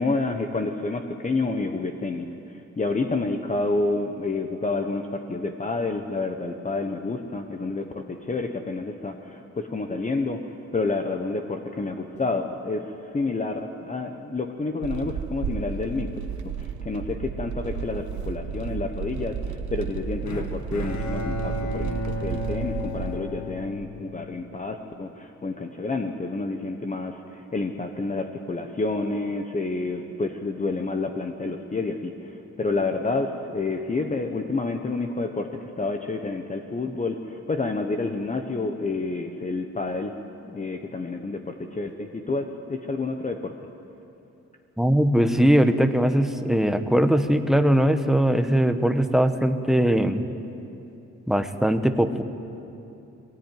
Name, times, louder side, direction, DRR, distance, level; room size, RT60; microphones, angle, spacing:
voice 1, 0.0-10.4 10.7-16.1 16.4-40.2 40.4-43.5, left 3 dB, 25° left, 5 dB, 1.0 m, -29 dB
sound 1, 14.8-23.2, right 7 dB, 85° right, 1.2 m, -32 dB
Bowed string instrument, 20.3-24.5, left 2 dB, 75° left, 2.0 m, -33 dB
voice 2, 44.8-50.2 51.3-52.2, equal, ahead, 8 dB, 1.0 m, -20 dB
21.5 x 18.0 x 9.3 m, 2.8 s
wide cardioid pair, 140°, 29 cm